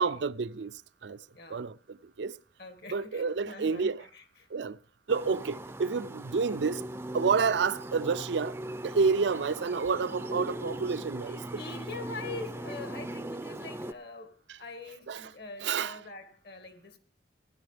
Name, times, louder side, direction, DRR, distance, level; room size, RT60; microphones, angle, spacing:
voice 1, 0.0-1.2 1.5-2.4 2.9-4.1 4.5-4.8 5.1-6.8 7.1-8.6 8.8-11.6 14.5-14.6 15.1-15.3 15.6-16.0, right 5 dB, 75° right, 0.5 m, -29 dB
voice 2, 1.3-1.7 2.6-4.5 11.3-17.0, left 3 dB, 60° left, 1.9 m, -44 dB
sound 1, 5.1-13.9, right 1 dB, 15° right, 0.5 m, -39 dB
16.0 x 11.5 x 3.4 m
head